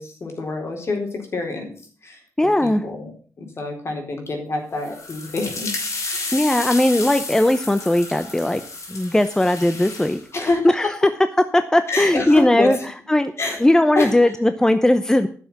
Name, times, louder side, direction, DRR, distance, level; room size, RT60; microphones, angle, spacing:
voice 1, 0.0-1.7 2.0-2.2 2.6-3.1 3.4-5.7 6.1-6.4 10.3-10.9 11.9-12.8 13.4-13.6 14.0-14.3, left 3 dB, 50° left, 2 dB, 4.0 m, -26 dB
voice 2, 2.4-2.8 6.3-8.6 8.9-10.9 11.5-12.8 13.1-13.3 13.6-15.3, left 1 dB, 10° left, 10 dB, 0.7 m, -18 dB
sound 1, 4.8-10.2, left 3 dB, 70° left, 4.5 m, -31 dB
11.0 x 7.0 x 7.1 m, 0.43 s
cardioid pair, 90°, 6 cm